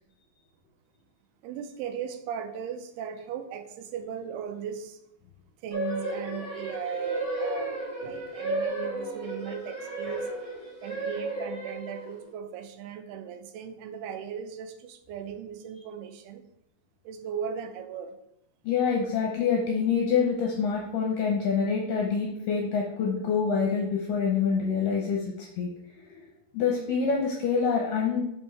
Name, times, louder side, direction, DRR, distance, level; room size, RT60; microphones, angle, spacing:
voice 1, 1.4-5.0 5.6-10.3 10.8-16.4 17.0-18.2, right 8 dB, 85° right, 8 dB, 2.6 m, -37 dB
sound 1, 5.7-12.3, right 2 dB, 25° right, 0.7 m, -33 dB
voice 2, 18.7-26.1 26.5-28.3, left 6 dB, 75° left, -1 dB, 2.2 m, -26 dB
5.5 x 5.3 x 4.6 m, 0.81 s
omnidirectional pair, 4.5 m